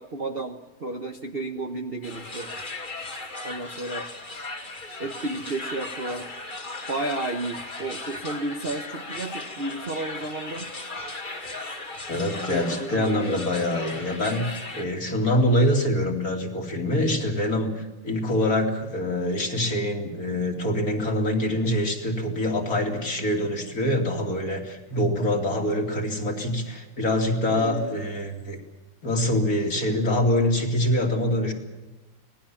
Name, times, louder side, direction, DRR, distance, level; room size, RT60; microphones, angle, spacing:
voice 1, 0.0-2.5 3.4-4.1 5.0-6.3 6.9-10.7 12.5-13.4 27.5-28.0, right 2 dB, 35° right, 5 dB, 1.0 m, -32 dB
sound 1, 2.0-14.8, left 2 dB, 25° left, 2.1 m, -37 dB
voice 2, 12.1-28.6 29.0-31.5, left 1 dB, 45° left, 3 dB, 3.2 m, -25 dB
25.0 x 18.5 x 7.2 m, 1.1 s
omnidirectional pair, 2.2 m